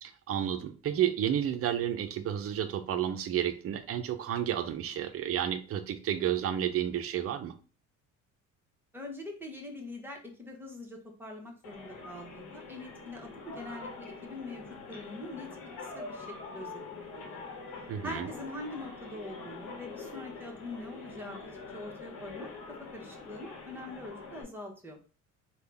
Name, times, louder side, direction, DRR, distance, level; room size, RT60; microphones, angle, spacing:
voice 1, 0.0-7.5 17.9-18.3, right 10 dB, 45° right, 8 dB, 0.5 m, -31 dB
voice 2, 8.9-15.5 15.8-17.4 18.0-22.5 22.9-25.0, left 2 dB, 5° right, 0 dB, 1.0 m, -44 dB
sound 1, 11.6-24.4, left 3 dB, 90° left, 1.0 m, -45 dB
3.6 x 2.3 x 3.4 m, 0.37 s
cardioid pair, 90°, 33 cm